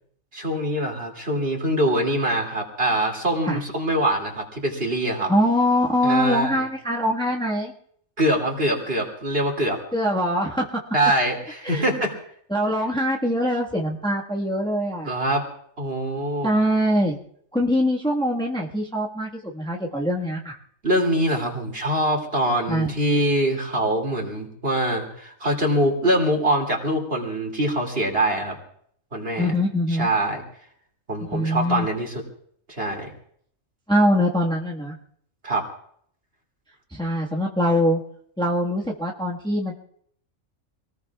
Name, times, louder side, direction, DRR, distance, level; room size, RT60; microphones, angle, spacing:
voice 1, 0.3-5.3 6.0-6.6 8.2-9.8 10.9-12.2 15.0-15.5 15.8-16.5 20.8-28.6 29.1-29.5 29.9-30.4 31.1-32.2 32.7-33.1 35.4-35.6, right 1 dB, 45° right, 2 dB, 3.0 m, -24 dB
voice 2, 5.3-7.7 9.9-10.8 11.6-11.9 12.5-15.1 16.4-17.2 17.5-20.5 22.7-22.9 29.4-30.1 31.3-31.8 33.9-34.9 36.9-38.0 38.4-39.7, equal, 5° left, -3 dB, 1.5 m, -23 dB
26.5 x 19.5 x 2.4 m, 0.63 s
omnidirectional pair, 1.4 m